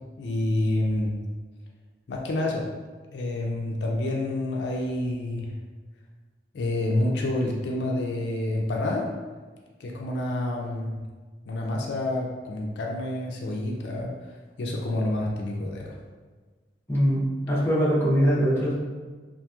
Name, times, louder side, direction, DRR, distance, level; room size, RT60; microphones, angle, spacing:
voice 1, 0.2-1.2 2.1-2.7 3.1-5.5 6.5-9.1 9.8-11.0 11.5-14.1 14.6-16.0, left 1 dB, 70° left, -1 dB, 0.4 m, -28 dB
voice 2, 16.9-18.7, equal, 15° left, -8 dB, 0.6 m, -22 dB
2.8 x 2.5 x 2.3 m, 1.4 s
head